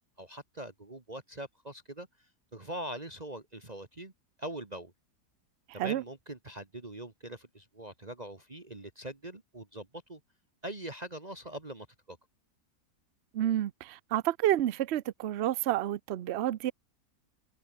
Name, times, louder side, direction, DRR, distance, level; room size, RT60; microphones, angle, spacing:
voice 1, 0.2-2.1 2.5-4.1 4.4-4.9 5.7-10.2 10.6-12.2, right 1 dB, 25° right, 1.9 m, -42 dB
voice 2, 13.3-16.7, right 12 dB, 60° right, 0.7 m, -29 dB
omnidirectional pair, 1.7 m